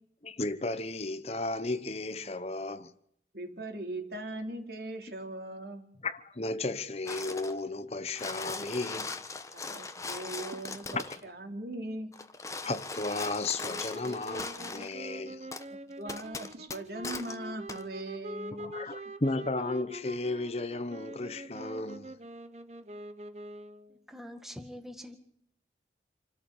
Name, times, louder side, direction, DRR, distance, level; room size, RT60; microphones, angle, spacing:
voice 1, 0.2-2.9 6.0-9.1 10.9-11.2 12.6-15.5 18.6-22.1, left 2 dB, 35° left, 0.9 m, -34 dB
voice 2, 3.3-5.8 9.5-12.1 16.0-18.9, right 1 dB, 60° right, 3.5 m, -40 dB
sound 1, 7.1-7.6 8.0-11.2 12.1-14.9 15.5-15.7 16.1-17.4 17.7-17.8, left 3 dB, 20° left, 1.2 m, -39 dB
sound 2, 13.6-24.0, equal, 40° right, 1.3 m, -44 dB
voice 3, 23.9-25.2, equal, ahead, 1.8 m, -45 dB
28.0 x 13.5 x 8.2 m
head